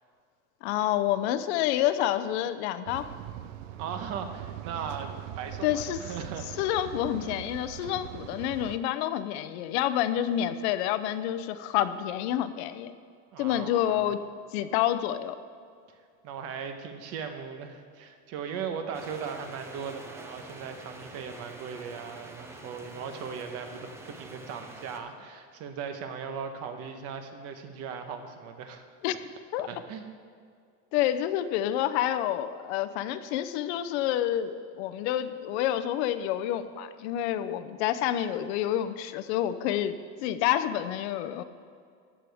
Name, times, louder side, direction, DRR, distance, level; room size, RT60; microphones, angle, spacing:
voice 1, 0.6-3.1 5.6-6.0 6.6-12.9 13.4-14.2 14.5-15.4 29.0-29.2 29.5-29.7 30.9-41.4, left 11 dB, 60° left, 12 dB, 0.6 m, -28 dB
sound 1, 2.9-8.8, right 12 dB, 90° right, 0.6 m, -41 dB
voice 2, 3.8-6.6 13.3-14.1 16.2-28.8 29.7-30.1, right 6 dB, 40° right, 6 dB, 1.1 m, -38 dB
sound 2, 18.9-25.0, right 2 dB, 5° right, 0.5 m, -46 dB
14.5 x 9.9 x 3.5 m, 2.2 s
cardioid pair, 165°, 37 cm